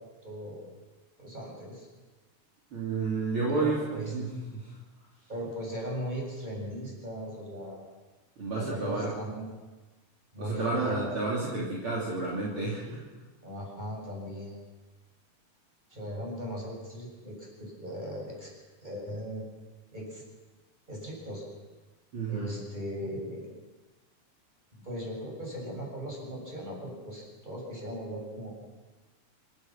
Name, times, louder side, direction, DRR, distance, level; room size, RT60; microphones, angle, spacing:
voice 1, 0.2-0.6 1.2-1.9 3.5-4.1 5.3-7.8 8.5-9.5 10.3-11.1 13.4-14.6 15.9-18.5 18.8-19.5 19.9-20.2 20.9-21.4 22.3-23.5 24.7-28.5, equal, 15° right, -2 dB, 7.2 m, -38 dB
voice 2, 2.7-4.7 8.4-9.1 10.4-13.0 22.1-22.5, right 3 dB, 45° right, -5 dB, 4.1 m, -31 dB
28.0 x 15.5 x 6.1 m, 1.2 s
omnidirectional pair, 3.4 m